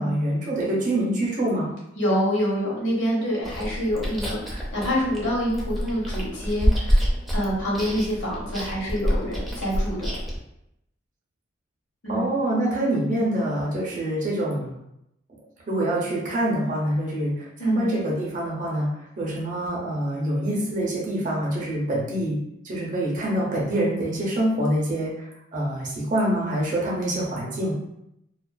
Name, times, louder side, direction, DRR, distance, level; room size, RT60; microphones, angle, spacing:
voice 1, 0.0-1.7 12.1-14.8 15.7-18.9 19.2-22.4 22.6-27.7, right 1 dB, 40° right, -4 dB, 0.6 m, -25 dB
voice 2, 2.0-10.1 12.0-12.3 17.6-17.9, equal, 75° left, -5 dB, 0.9 m, -26 dB
Chewing mastication, 3.4-10.4, equal, ahead, 0.3 m, -27 dB
2.4 x 2.3 x 2.2 m, 0.82 s
head